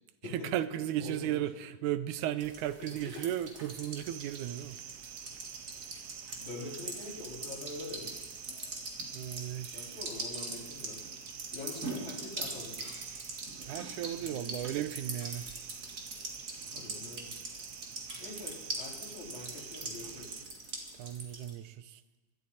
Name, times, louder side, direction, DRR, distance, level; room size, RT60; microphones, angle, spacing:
voice 1, 0.3-4.8 9.1-10.0 13.6-15.5 21.0-22.0, right 12 dB, 85° right, 13 dB, 2.1 m, -35 dB
voice 2, 1.0-1.4 2.8-3.3 4.8-4.9 6.4-8.2 9.7-11.0 11.5-13.0 14.1-14.5 16.6-17.3 18.2-20.4, left 3 dB, 75° left, -5 dB, 6.0 m, -44 dB
sound 1, 2.4-21.5, right 2 dB, 30° right, 1.9 m, -43 dB
sound 2, 4.0-20.5, right 10 dB, 70° right, 1.6 m, -48 dB
sound 3, 12.7-13.4 14.1-14.2 14.6-14.7 15.2-15.9 16.3-16.4 17.2-17.3 18.1-18.8 19.3-19.4, equal, 20° left, 2.8 m, -56 dB
22.5 x 12.5 x 4.2 m, 1.2 s
omnidirectional pair, 3.4 m